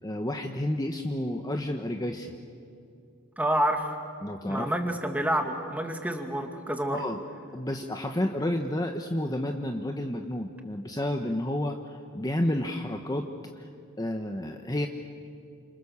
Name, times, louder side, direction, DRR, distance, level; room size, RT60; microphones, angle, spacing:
voice 1, 0.0-2.3 4.2-4.7 6.9-7.2 7.5-13.7 14.0-14.9, left 1 dB, 20° left, 4 dB, 1.0 m, -31 dB
voice 2, 3.4-4.0 4.4-7.0, right 1 dB, 5° right, 4 dB, 2.1 m, -28 dB
29.5 x 27.0 x 7.2 m, 2.5 s
head